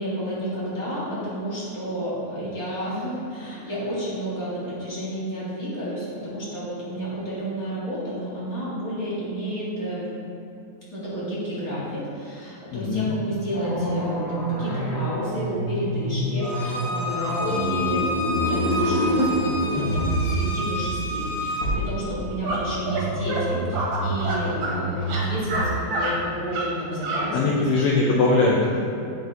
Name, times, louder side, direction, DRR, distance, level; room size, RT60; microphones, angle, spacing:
voice 1, 0.0-10.1 10.9-18.1 18.3-27.7, equal, 30° left, -9 dB, 1.8 m, -31 dB
voice 2, 12.7-13.1 27.3-28.8, left 3 dB, 85° left, -3 dB, 1.6 m, -21 dB
sound 1, 13.5-25.8, right 1 dB, 55° left, 2.5 m, -27 dB
Bowed string instrument, 16.4-21.7, left 2 dB, 70° left, 1.2 m, -30 dB
sound 2, 22.4-22.6 22.9-23.0 23.3-23.4 23.7-24.8 25.0-25.6 25.9-26.1 26.5-26.7 27.0-27.2, right 2 dB, 85° right, 2.9 m, -27 dB
8.7 x 6.2 x 3.4 m, 2.7 s
omnidirectional pair, 4.0 m